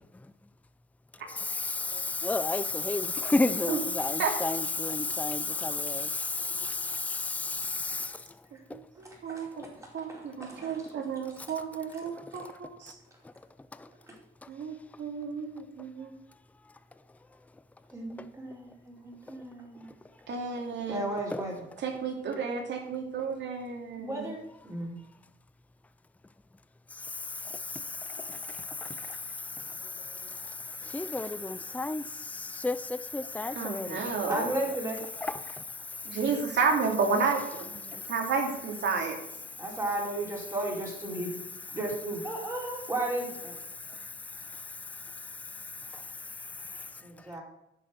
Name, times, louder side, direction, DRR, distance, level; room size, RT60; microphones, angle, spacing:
voice 1, 1.3-8.1 30.9-32.1 32.3-34.0, left 3 dB, 5° left, 0.5 m, -31 dB
voice 2, 5.5-6.2 6.6-6.7 9.0-11.0 11.5-11.6 11.9-12.0 12.3-12.4 14.1-14.2 17.9-19.9 20.9-21.7 24.0-25.0 34.3-35.0 39.6-41.3 41.7-43.5 47.0-47.4, right 1 dB, 15° right, 4.5 m, -35 dB
voice 3, 8.7-9.5 9.9-12.9 14.5-16.1 20.3-21.0 21.8-24.3 33.5-34.5 36.0-39.2, right 5 dB, 65° right, 2.9 m, -31 dB
10.5 x 6.4 x 6.7 m
cardioid pair, 90°, 20 cm